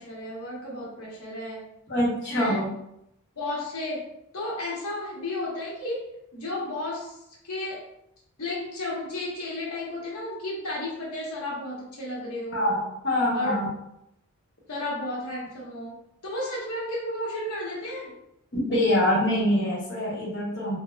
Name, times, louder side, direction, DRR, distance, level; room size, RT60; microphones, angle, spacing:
voice 1, 0.0-1.7 2.3-2.6 3.4-4.1 4.3-6.1 6.3-7.2 7.4-7.8 8.4-12.8 13.3-13.6 14.7-18.1, left 1 dB, 85° left, -4 dB, 0.9 m, -33 dB
voice 2, 1.9-2.7 12.5-13.7 18.5-20.8, left 1 dB, 50° left, -5 dB, 0.9 m, -24 dB
4.2 x 2.1 x 2.2 m, 0.80 s
head